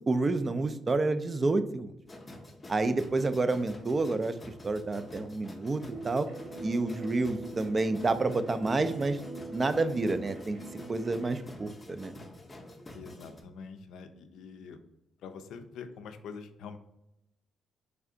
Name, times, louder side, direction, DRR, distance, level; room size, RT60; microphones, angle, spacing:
voice 1, 0.1-1.9 2.7-4.3 4.6-6.3 6.6-9.2 9.5-10.6 10.9-12.1, right 3 dB, 30° right, 11 dB, 0.3 m, -29 dB
sound 1, 2.1-13.4, left 1 dB, 25° left, 0.6 m, -48 dB
sound 2, 5.9-11.4, right 3 dB, 70° right, 1.0 m, -44 dB
voice 2, 8.7-9.1 12.9-14.8 15.2-16.8, left 5 dB, 80° left, 8 dB, 0.4 m, -45 dB
3.3 x 2.4 x 3.7 m, 0.85 s
cardioid pair, 90°, 0 cm